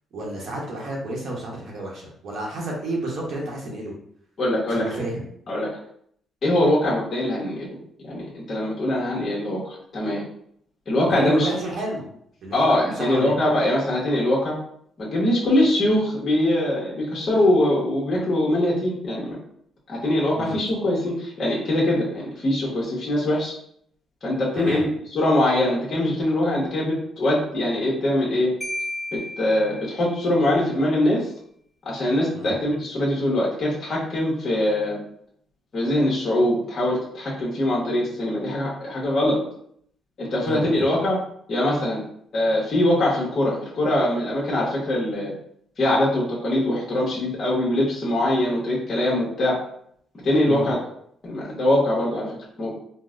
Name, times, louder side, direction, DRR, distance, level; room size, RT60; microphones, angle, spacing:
voice 1, 0.1-3.9 4.7-5.3 11.1-12.1 12.4-13.4 20.4-20.6 24.5-24.9 32.3-32.5 40.4-40.9 50.4-50.7, right 1 dB, 60° right, -3 dB, 0.9 m, -31 dB
voice 2, 4.4-5.0 5.5-5.7 6.4-7.7 8.1-10.2 10.9-11.5 12.5-14.6 15.0-19.4 19.9-23.5 24.2-28.5 29.1-31.3 31.8-35.0 35.7-39.4 40.2-41.2 41.5-42.0 42.3-45.3 45.8-49.6 50.2-50.8 51.2-52.3 52.6-52.7, left 1 dB, 45° left, -5 dB, 1.0 m, -22 dB
Marimba xylophone, 28.6-30.3, left 1 dB, 15° left, 0.9 m, -34 dB
3.9 x 2.0 x 2.5 m, 0.66 s
cardioid pair, 95°, 0 cm